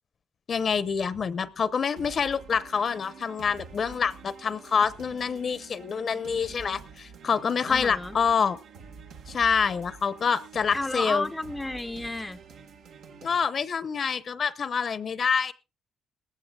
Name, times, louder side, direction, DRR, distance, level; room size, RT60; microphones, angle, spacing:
voice 1, 0.5-8.6 9.3-11.3 13.2-15.5, left 6 dB, 50° left, 0.8 m, -26 dB
sound 1, 2.0-13.4, right 5 dB, 80° right, 1.6 m, -47 dB
voice 2, 7.7-8.2 10.7-12.4, left 2 dB, 10° left, 0.6 m, -32 dB
19.0 x 15.0 x 2.3 m
cardioid pair, 90°, 0 cm